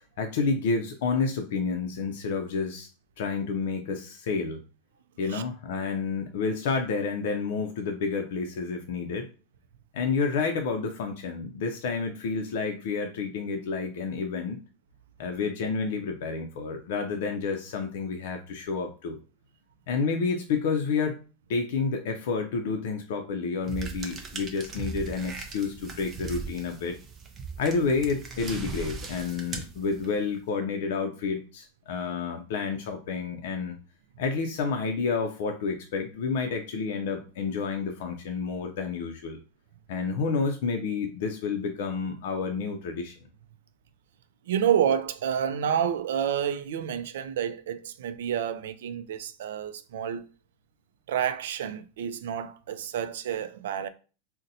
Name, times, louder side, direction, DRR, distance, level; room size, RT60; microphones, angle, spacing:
voice 1, 0.2-2.9 3.2-4.6 5.2-9.3 9.9-14.6 15.2-19.2 19.9-21.2 21.5-27.0 27.6-33.8 34.2-39.4 39.9-43.2, left 4 dB, 65° left, 0.4 m, -29 dB
sound 1, 23.7-30.3, right 4 dB, 20° right, 0.5 m, -39 dB
voice 2, 44.5-50.3 51.1-53.9, right 9 dB, 85° right, 0.3 m, -29 dB
4.0 x 2.1 x 2.6 m
supercardioid pair, 160°, 0 cm